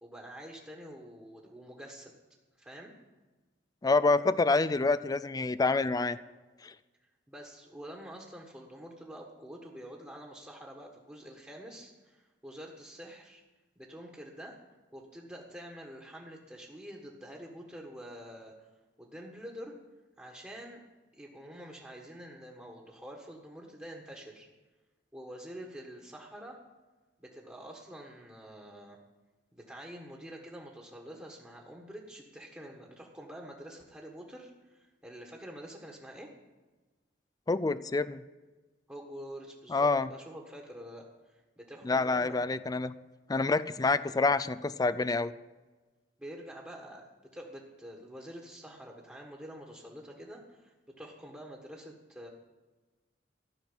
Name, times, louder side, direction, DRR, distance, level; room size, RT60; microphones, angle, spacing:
voice 1, 0.0-2.1 2.6-2.9 7.3-13.4 13.8-14.6 14.9-18.7 19.0-19.8 20.2-20.8 21.1-24.5 25.1-26.6 27.2-29.0 29.5-36.3 38.9-42.4 46.2-52.3, equal, 10° right, -1 dB, 1.5 m, -47 dB
voice 2, 3.8-6.2 6.6-6.7 37.5-38.2 39.7-40.1 41.8-42.9 43.3-45.3, left 3 dB, 20° left, 14 dB, 0.4 m, -27 dB
14.5 x 6.4 x 9.9 m, 1.2 s
head